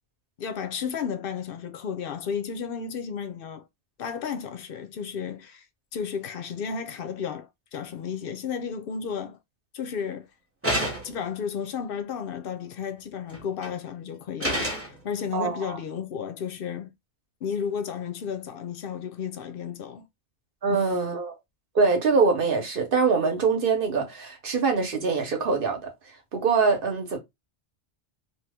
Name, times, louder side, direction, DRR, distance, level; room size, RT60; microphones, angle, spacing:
voice 1, 0.4-3.6 4.0-5.6 5.9-9.4 9.7-10.3 11.0-14.7 15.0-16.9 17.4-20.1 20.7-20.9, left 7 dB, 65° left, 0.7 m, -33 dB
sound 1, 10.6-11.3 13.3-13.7 14.4-15.0, right 1 dB, 15° right, 0.8 m, -28 dB
voice 2, 15.3-15.8 20.6-21.3 21.7-25.9 26.3-27.2, right 4 dB, 55° right, 1.0 m, -24 dB
2.9 x 2.2 x 3.3 m
omnidirectional pair, 1.1 m